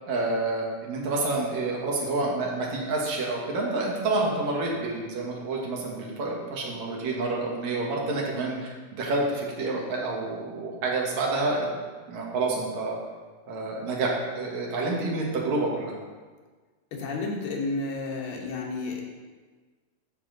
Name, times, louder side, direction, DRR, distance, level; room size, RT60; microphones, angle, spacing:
voice 1, 0.1-11.7 12.1-13.0 13.5-16.0, right 2 dB, 60° right, -2 dB, 2.6 m, -28 dB
voice 2, 16.9-19.0, left 3 dB, 80° left, -1 dB, 2.9 m, -31 dB
12.0 x 6.1 x 4.0 m, 1.4 s
omnidirectional pair, 4.0 m